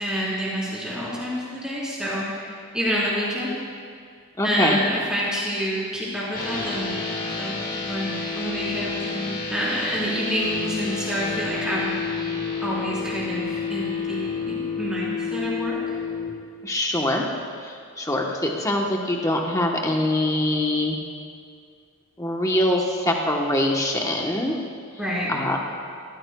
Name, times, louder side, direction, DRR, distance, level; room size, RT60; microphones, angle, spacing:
voice 1, 0.0-3.5 4.4-12.0 12.6-15.8 24.9-25.3, equal, 5° right, -8 dB, 3.8 m, -28 dB
voice 2, 4.4-4.8 16.6-17.2 17.6-21.0 22.2-24.6 25.3-25.6, left 1 dB, 15° left, 0 dB, 1.0 m, -23 dB
sound 1, 6.3-16.3, left 5 dB, 40° left, 1.9 m, -30 dB
20.5 x 14.5 x 2.3 m, 2.2 s
head